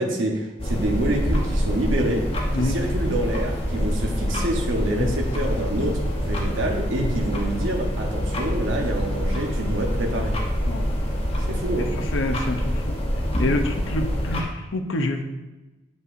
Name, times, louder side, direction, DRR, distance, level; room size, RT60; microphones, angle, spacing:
voice 1, 0.0-2.2 2.6-10.3 11.5-11.9, right 1 dB, 75° right, 0 dB, 0.9 m, -27 dB
sound 1, 0.6-14.4, equal, 30° left, 0.9 m, -26 dB
voice 2, 12.1-12.6 13.4-15.2, left 2 dB, 70° left, 6 dB, 0.7 m, -26 dB
8.0 x 5.3 x 2.5 m, 1.1 s
head